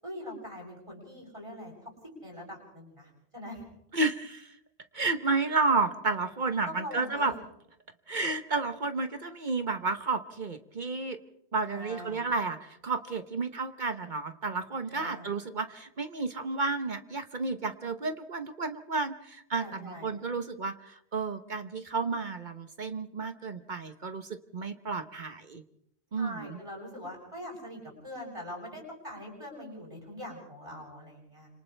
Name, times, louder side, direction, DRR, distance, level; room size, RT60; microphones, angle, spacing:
voice 1, 0.0-1.9 2.2-3.6 6.7-7.3 11.6-12.2 14.9-15.3 19.6-20.1 26.1-31.5, left 1 dB, 30° right, 0 dB, 8.2 m, -43 dB
voice 2, 3.9-4.5 4.9-7.3 8.1-11.2 11.5-25.6 26.1-26.6, right 3 dB, 50° right, 9 dB, 1.1 m, -31 dB
29.5 x 26.5 x 3.4 m, 0.75 s
omnidirectional pair, 1.1 m